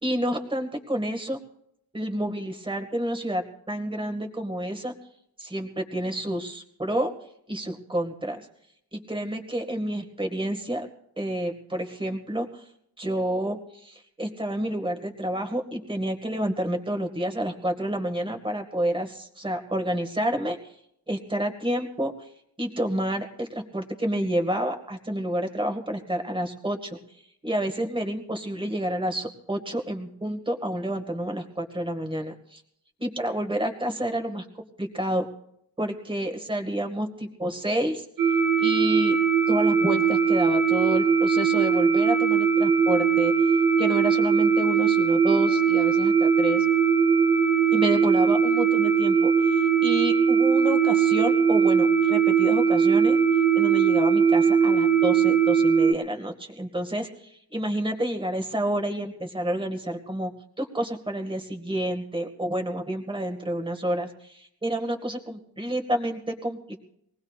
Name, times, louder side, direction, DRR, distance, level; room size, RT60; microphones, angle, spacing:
voice 1, 0.0-1.4 1.9-4.9 5.4-7.1 7.5-8.5 8.9-10.9 11.2-12.6 13.0-20.6 21.1-22.1 22.6-27.0 27.4-32.6 33.0-35.3 35.8-38.1 38.6-39.2 39.5-43.3 43.8-46.7 47.7-53.2 53.6-60.3 60.6-66.8, right 1 dB, 15° right, 5 dB, 1.9 m, -29 dB
sound 1, 38.2-55.9, right 6 dB, 55° right, 1.0 m, -20 dB
24.5 x 19.0 x 2.4 m, 0.74 s
cardioid pair, 110°, 38 cm